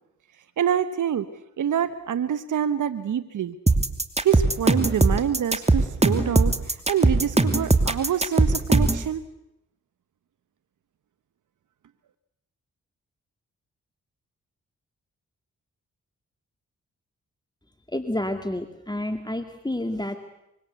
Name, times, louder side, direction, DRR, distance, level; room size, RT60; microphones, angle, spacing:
voice 1, 0.6-1.3 1.6-3.6 4.2-9.2, right 9 dB, 75° right, 13 dB, 1.2 m, -26 dB
sound 1, 3.7-9.0, right 2 dB, 20° right, 2.8 m, -20 dB
voice 2, 17.9-20.2, left 1 dB, 15° left, 7 dB, 2.5 m, -29 dB
25.0 x 24.0 x 8.2 m, 0.81 s
cardioid pair, 50°, 31 cm